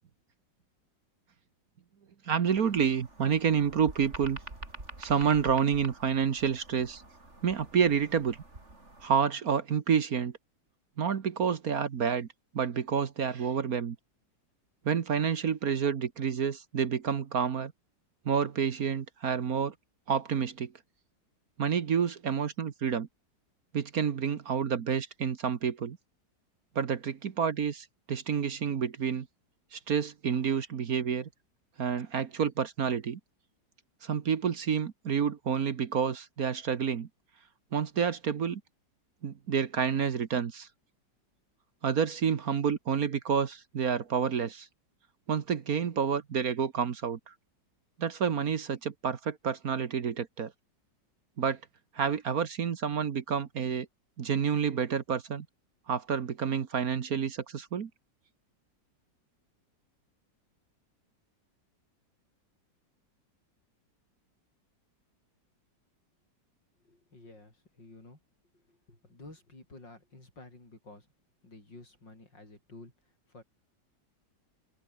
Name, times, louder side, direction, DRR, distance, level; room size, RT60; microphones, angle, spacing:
voice 1, 2.2-4.4 5.0-7.0 7.4-8.4 9.0-10.3 11.0-12.3 12.5-14.0 14.8-17.7 18.2-19.7 20.1-20.7 21.6-23.1 23.7-26.0 26.7-29.3 29.7-31.3 31.8-33.2 34.0-37.1 37.7-38.6 39.2-40.7 41.8-44.7 45.3-47.3 48.0-50.5 51.4-51.6 51.9-53.9 54.2-55.4 55.9-57.9, right 7 dB, 55° right, 1.6 m, -29 dB
sound 1, 2.5-9.1, right 2 dB, 40° right, 5.2 m, -47 dB
voice 2, 66.8-68.2 68.5-71.1 71.4-73.4, left 2 dB, 75° left, 8.6 m, -52 dB
open air
omnidirectional pair, 2.0 m